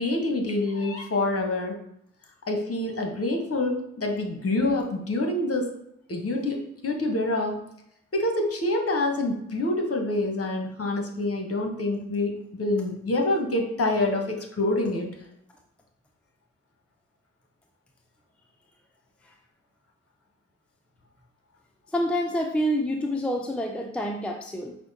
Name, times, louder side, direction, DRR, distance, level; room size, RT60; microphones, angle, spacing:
voice 1, 0.0-1.8 2.4-5.7 6.1-7.6 8.1-15.1, left 2 dB, 40° left, 3 dB, 1.3 m, -26 dB
voice 2, 21.9-24.8, equal, 5° left, 2 dB, 0.6 m, -27 dB
5.5 x 2.3 x 4.1 m, 0.75 s
hypercardioid pair, 40°, 35 cm